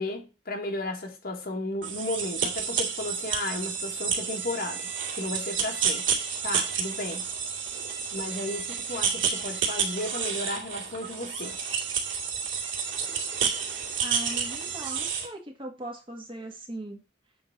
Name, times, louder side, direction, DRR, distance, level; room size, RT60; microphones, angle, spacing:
voice 1, 0.0-4.8 5.1-6.2 6.4-7.3 8.1-11.8, left 2 dB, 55° left, 2.1 m, -34 dB
sound 1, 1.8-15.3, right 6 dB, 80° right, 2.4 m, -30 dB
voice 2, 14.0-17.0, right 1 dB, 30° right, 1.8 m, -39 dB
8.4 x 3.9 x 5.9 m
head